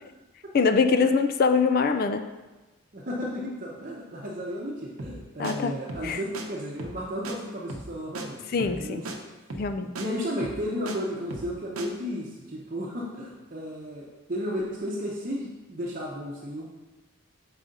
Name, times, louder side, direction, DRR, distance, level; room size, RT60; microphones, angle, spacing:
voice 1, 0.5-2.2 5.4-5.8 6.0-6.2 8.5-9.0 9.6-9.9, left 5 dB, 45° left, 8 dB, 0.3 m, -23 dB
voice 2, 2.9-9.2 9.5-16.7, equal, 40° right, -5 dB, 0.8 m, -34 dB
sound 1, 5.0-5.2 5.4-5.5 5.9-6.1 6.3-6.4 6.8-7.0 7.2-7.3 7.7-8.3 8.6-8.8 9.0-9.2 9.5-9.7 9.9-10.1 10.4-11.0 11.3-11.5 11.8-11.9, right 2 dB, 90° right, 0.8 m, -36 dB
6.7 x 4.8 x 3.8 m, 1.1 s
head